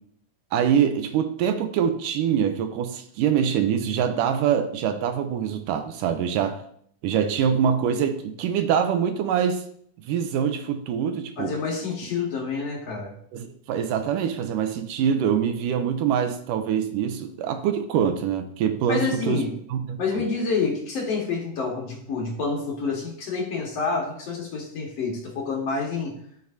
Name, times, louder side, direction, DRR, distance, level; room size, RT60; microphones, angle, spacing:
voice 1, 0.5-6.6 7.0-9.6 10.1-11.5 13.3-20.2, right 8 dB, 80° right, 2.2 m, -24 dB
voice 2, 11.4-13.1 18.9-19.6 20.0-26.2, left 4 dB, 55° left, 2.4 m, -28 dB
13.5 x 6.1 x 2.7 m
omnidirectional pair, 3.9 m